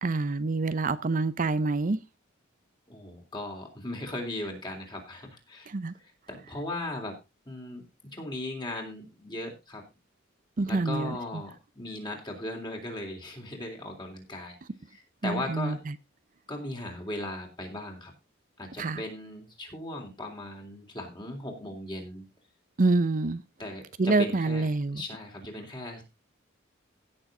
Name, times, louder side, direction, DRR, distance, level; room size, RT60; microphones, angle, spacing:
voice 1, 0.0-2.0 5.7-5.9 10.6-11.2 15.2-15.8 18.8-19.0 22.8-23.4 24.0-25.0, right 3 dB, 40° right, 0.6 m, -26 dB
voice 2, 2.9-5.7 6.3-7.2 7.5-7.8 8.1-9.8 10.7-14.6 14.9-15.8 16.5-18.1 18.6-22.3 23.6-26.0, left 1 dB, 25° left, 3.6 m, -38 dB
16.5 x 6.8 x 3.8 m
head